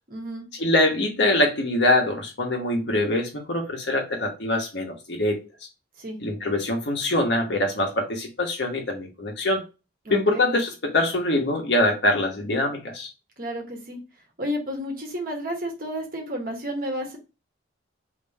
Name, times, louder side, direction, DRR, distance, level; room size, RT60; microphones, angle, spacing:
voice 1, 0.1-0.5 6.0-6.2 10.0-10.5 13.4-14.0 14.4-17.2, equal, 50° right, 1.3 m, -31 dB
voice 2, 0.6-5.4 6.2-9.6 10.1-13.1, left 1 dB, 65° left, 1.2 m, -24 dB
3.5 x 3.0 x 4.1 m
head